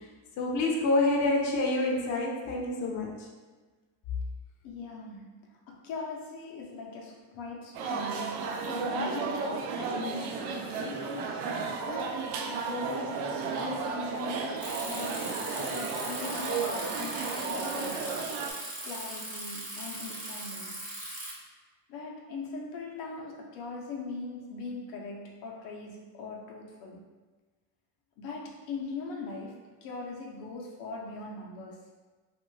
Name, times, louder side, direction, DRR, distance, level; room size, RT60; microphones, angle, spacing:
voice 1, 0.4-3.1, left 2 dB, 40° left, -2 dB, 0.6 m, -27 dB
voice 2, 4.6-5.4 5.7-11.0 11.8-18.1 18.8-20.8 21.9-27.0 28.2-31.8, left 3 dB, 80° left, -2 dB, 0.8 m, -40 dB
sound 1, 7.7-18.5, right 5 dB, 85° right, 0.6 m, -33 dB
Bicycle, 14.6-21.3, right 1 dB, 15° right, 0.7 m, -39 dB
2.6 x 2.5 x 3.1 m, 1.3 s
supercardioid pair, 105°, 48 cm